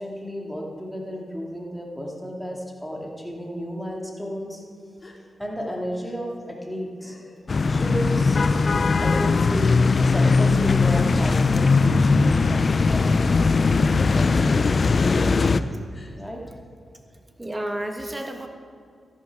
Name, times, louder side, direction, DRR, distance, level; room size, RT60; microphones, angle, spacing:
voice 1, 0.0-4.6 5.4-7.1 7.7-8.4 9.0-14.7 16.2-16.4, equal, ahead, -1 dB, 2.5 m, -33 dB
Gasp, 5.0-5.2 6.0-6.1 7.0-7.4 8.2-8.5 9.3-9.5 10.4-10.5 11.4-11.7 12.7-12.8 13.7-13.9 14.9-15.0 15.9-16.1, left 2 dB, 35° left, 2.3 m, -46 dB
sound 1, 7.5-15.6, left 4 dB, 50° left, 0.4 m, -19 dB
voice 2, 17.4-18.5, right 1 dB, 20° right, 5 dB, 1.5 m, -32 dB
13.0 x 11.0 x 4.8 m, 2.3 s
cardioid pair, 60°, 0 cm